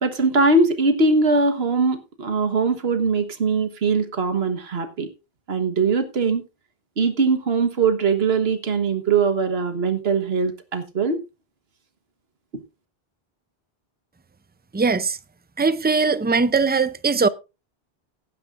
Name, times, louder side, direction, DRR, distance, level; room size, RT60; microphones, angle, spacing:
voice 1, 0.0-5.1 5.5-6.4 7.0-11.2, right 4 dB, 80° right, 1.6 m, -21 dB
voice 2, 14.7-15.2 15.6-17.3, right 4 dB, 15° right, 0.3 m, -20 dB
18.0 x 9.8 x 2.5 m
omnidirectional pair, 1.0 m